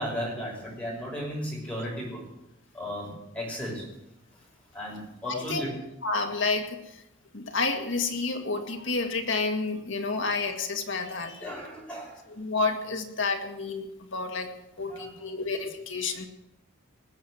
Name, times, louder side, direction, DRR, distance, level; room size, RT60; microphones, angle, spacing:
voice 1, 0.0-2.2 2.7-3.8 4.7-5.7 11.4-12.2 14.8-15.4, equal, 5° left, -4 dB, 6.1 m, -35 dB
voice 2, 5.2-5.7 6.0-6.8 7.3-11.5 12.4-14.5 14.8-16.3, left 3 dB, 60° left, 4 dB, 2.0 m, -30 dB
19.5 x 7.5 x 7.9 m, 0.88 s
head